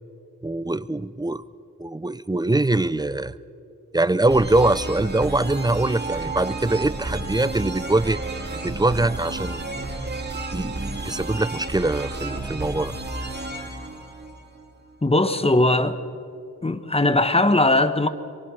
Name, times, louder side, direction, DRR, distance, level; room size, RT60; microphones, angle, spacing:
voice 1, 0.4-1.4 1.8-3.3 3.9-8.2 8.6-9.6 10.5-13.0, right 2 dB, 15° right, 0.5 m, -23 dB
sound 1, 4.3-14.9, right 2 dB, 30° right, 3.0 m, -32 dB
voice 2, 15.0-16.0 16.6-18.1, left 2 dB, 20° left, 1.2 m, -19 dB
23.5 x 23.0 x 6.3 m
cardioid pair, 80°, 32 cm